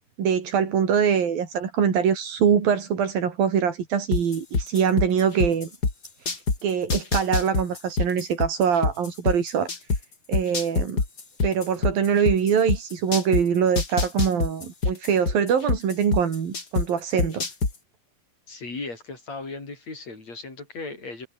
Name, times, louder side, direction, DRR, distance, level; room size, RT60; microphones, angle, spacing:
voice 1, 0.2-5.7 6.3-9.7 10.3-11.0 11.4-17.5, right 7 dB, 85° right, 5.1 m, -23 dB
sound 1, 4.1-6.6 6.9-10.0 10.3-13.4 13.8-16.9 17.2-17.7, left 4 dB, 30° left, 3.7 m, -24 dB
voice 2, 18.5-21.3, left 3 dB, 50° left, 8.2 m, -36 dB
omnidirectional pair, 4.0 m